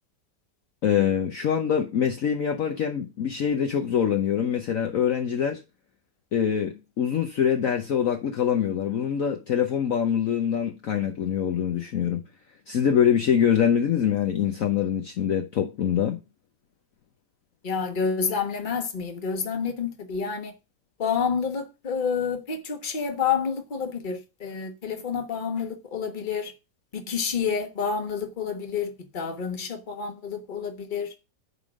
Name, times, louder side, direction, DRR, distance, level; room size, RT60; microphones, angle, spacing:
voice 1, 0.8-5.6 6.3-12.2 12.7-16.2, left 8 dB, 55° left, 1.1 m, -24 dB
voice 2, 17.6-20.5 21.0-26.5 26.9-31.1, left 6 dB, 30° left, 1.2 m, -29 dB
9.8 x 3.7 x 6.2 m
omnidirectional pair, 1.9 m